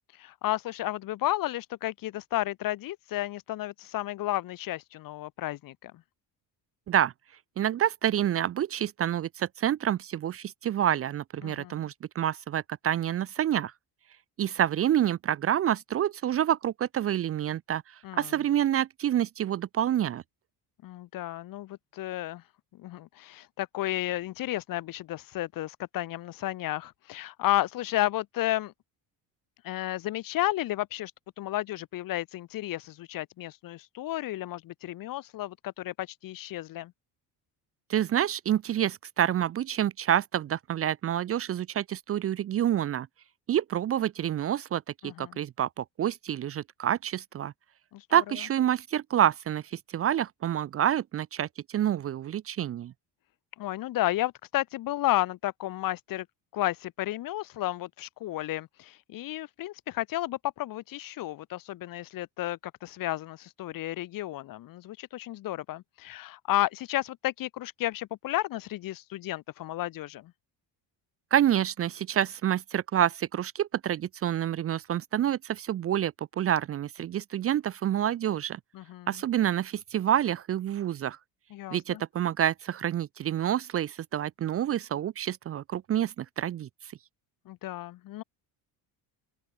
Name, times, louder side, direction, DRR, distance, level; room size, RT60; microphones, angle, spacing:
voice 1, 0.2-5.9 11.4-11.9 18.0-18.3 20.8-22.4 22.7-28.7 29.6-31.1 31.4-36.9 45.0-45.4 47.9-48.0 53.6-56.3 56.5-70.3 78.7-79.2 81.5-82.0 87.5-88.2, left 15 dB, 50° left, 1.1 m, -32 dB
voice 2, 7.6-13.7 14.4-20.2 37.9-43.1 43.5-47.5 48.1-52.9 71.3-78.6 79.1-81.2 81.7-86.9, right 10 dB, 35° right, 0.6 m, -28 dB
open air
cardioid pair, 155°, 43 cm